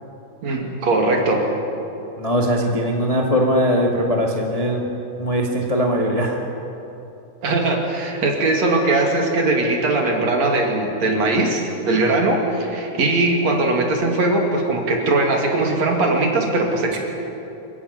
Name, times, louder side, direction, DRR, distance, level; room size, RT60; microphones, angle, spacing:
voice 1, 0.4-1.5 7.4-17.0, right 2 dB, 55° right, 1 dB, 3.6 m, -20 dB
voice 2, 2.2-4.8 5.2-6.4, equal, 15° left, 0 dB, 1.4 m, -20 dB
25.0 x 15.0 x 9.6 m, 2.9 s
omnidirectional pair, 3.7 m